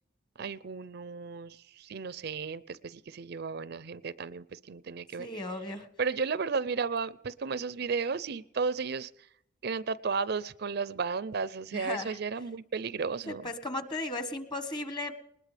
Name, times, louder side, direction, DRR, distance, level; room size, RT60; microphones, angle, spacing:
voice 1, 0.4-5.3 6.0-9.3 9.6-13.5, right 5 dB, 55° right, 18 dB, 0.5 m, -34 dB
voice 2, 5.2-5.9 11.7-12.1 13.3-15.1, left 2 dB, 25° left, 9 dB, 1.4 m, -36 dB
20.5 x 19.5 x 3.4 m, 0.75 s
head